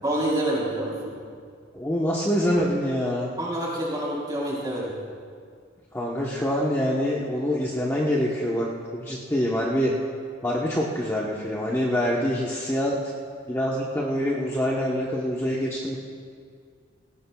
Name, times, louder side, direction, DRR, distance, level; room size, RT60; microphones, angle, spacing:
voice 1, 0.0-1.2 3.4-5.0, right 1 dB, 20° right, -5 dB, 3.7 m, -27 dB
voice 2, 1.7-3.3 5.9-8.7 8.9-9.9 10.4-13.0 13.5-16.0, equal, 15° left, -4 dB, 1.0 m, -25 dB
19.0 x 17.0 x 2.3 m, 2.2 s
head